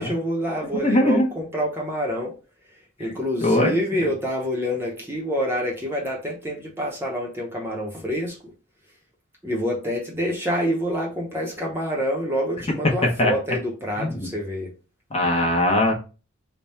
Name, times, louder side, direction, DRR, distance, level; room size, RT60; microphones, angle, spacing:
voice 1, 0.0-2.3 3.0-8.5 9.4-14.7, equal, 10° right, -2 dB, 0.8 m, -27 dB
voice 2, 0.8-1.3 3.0-3.1 3.4-3.7 12.8-13.3 14.0-14.3 15.1-15.9, left 1 dB, 30° left, 0 dB, 0.7 m, -20 dB
3.4 x 2.2 x 4.1 m, 0.33 s
head